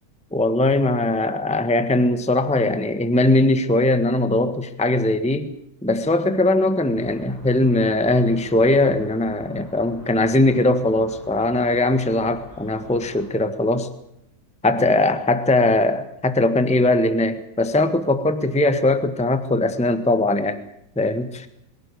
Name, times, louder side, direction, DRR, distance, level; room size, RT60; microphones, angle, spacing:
voice 1, 0.3-5.5 5.8-13.9 14.6-20.6 20.9-21.5, left 2 dB, 5° left, 10 dB, 1.4 m, -20 dB
sound 1, 6.9-13.3, left 1 dB, 40° left, 8.6 m, -46 dB
23.0 x 17.0 x 8.5 m, 0.78 s
omnidirectional pair, 1.9 m